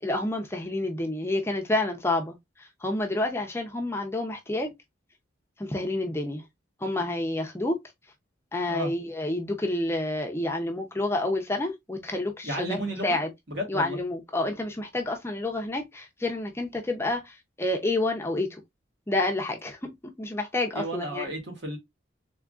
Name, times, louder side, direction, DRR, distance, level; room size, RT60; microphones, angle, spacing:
voice 1, 0.0-4.7 5.6-6.4 6.8-7.8 8.5-13.3 13.7-18.6 19.1-21.3, left 2 dB, 15° left, 0.6 m, -29 dB
voice 2, 12.4-13.2 13.5-14.0 20.7-21.8, equal, 60° right, 1.5 m, -32 dB
3.6 x 3.6 x 2.4 m
head